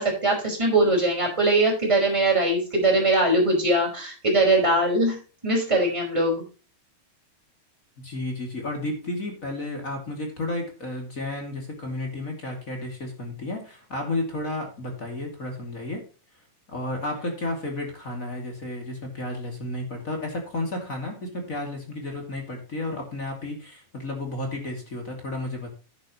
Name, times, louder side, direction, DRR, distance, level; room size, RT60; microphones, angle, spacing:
voice 1, 0.0-5.2 5.4-6.4, right 1 dB, 10° right, -2 dB, 5.1 m, -21 dB
voice 2, 8.0-16.0 16.7-25.7, left 2 dB, 25° left, 2 dB, 2.5 m, -32 dB
11.0 x 10.5 x 3.0 m, 0.34 s
omnidirectional pair, 3.8 m